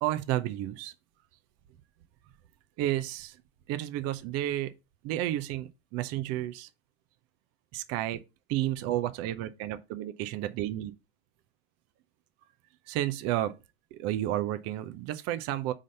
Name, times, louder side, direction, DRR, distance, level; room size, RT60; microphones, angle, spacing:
voice 1, 0.0-0.9 2.8-3.4 3.7-4.7 5.0-6.7 7.7-8.2 8.5-10.9 12.9-13.5 13.9-15.7, right 13 dB, 45° right, 0.7 m, -31 dB
4.9 x 4.0 x 5.2 m
hypercardioid pair, 85°, 33 cm